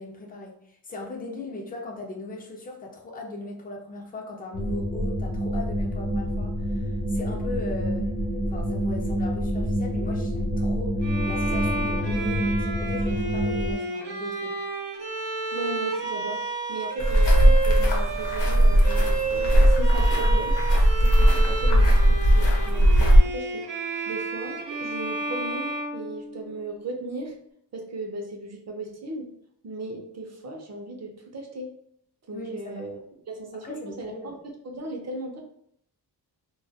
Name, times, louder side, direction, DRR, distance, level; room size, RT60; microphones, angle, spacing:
voice 1, 0.0-8.1 8.5-14.6 32.3-33.0 33.6-34.3, left 2 dB, 25° left, 1 dB, 0.4 m, -38 dB
sound 1, 4.5-13.7, equal, 55° left, 0.7 m, -27 dB
Bowed string instrument, 11.0-26.7, right 3 dB, 80° right, 0.7 m, -31 dB
voice 2, 15.5-16.4 16.7-23.6 24.1-27.4 27.7-29.3 29.6-31.7 32.3-32.9 33.3-34.3 34.6-35.4, right 2 dB, 40° right, 2 dB, 0.5 m, -36 dB
sound 2, 17.0-23.2, equal, 90° left, 0.8 m, -18 dB
2.2 x 2.2 x 2.6 m, 0.71 s
wide cardioid pair, 160°, 41 cm